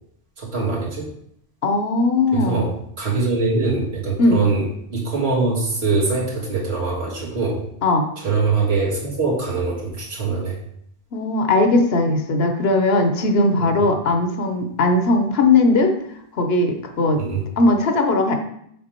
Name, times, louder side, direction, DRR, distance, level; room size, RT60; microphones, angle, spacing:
voice 1, 0.4-1.1 2.3-4.7 4.9-7.6 8.2-10.6 17.2-17.4, right 4 dB, 80° right, -3 dB, 1.9 m, -23 dB
voice 2, 1.6-2.6 4.2-4.4 7.8-8.1 11.1-15.9 16.3-17.2 17.6-18.4, left 2 dB, 75° left, 5 dB, 1.1 m, -18 dB
6.7 x 3.6 x 4.4 m, 0.70 s
omnidirectional pair, 1.1 m